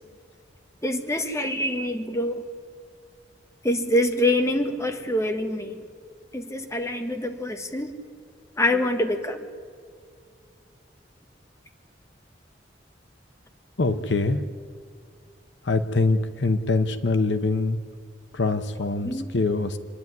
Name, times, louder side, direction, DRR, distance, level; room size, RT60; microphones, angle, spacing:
voice 1, 0.8-2.4 3.6-5.8 6.3-7.9 8.6-9.5 19.0-19.2, left 1 dB, 15° left, 6 dB, 1.3 m, -25 dB
voice 2, 13.8-14.4 15.6-17.8 18.3-19.8, left 3 dB, 80° left, 10 dB, 0.9 m, -24 dB
25.5 x 11.0 x 9.6 m, 2.2 s
head